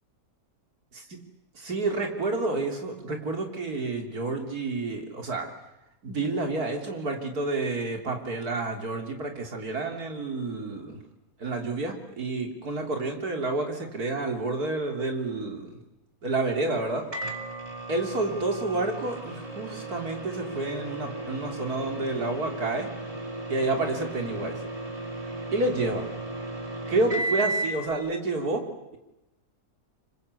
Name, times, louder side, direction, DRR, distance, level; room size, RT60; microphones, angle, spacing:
voice 1, 1.6-5.5 6.0-11.0 11.4-15.8 16.2-17.0 17.9-22.9 23.5-24.6 25.5-26.1 26.9-29.0, right 2 dB, 75° right, 3 dB, 3.8 m, -29 dB
Microwave oven, 17.1-27.9, right 2 dB, 20° right, 2.6 m, -35 dB
27.0 x 24.5 x 8.3 m, 0.95 s
omnidirectional pair, 1.6 m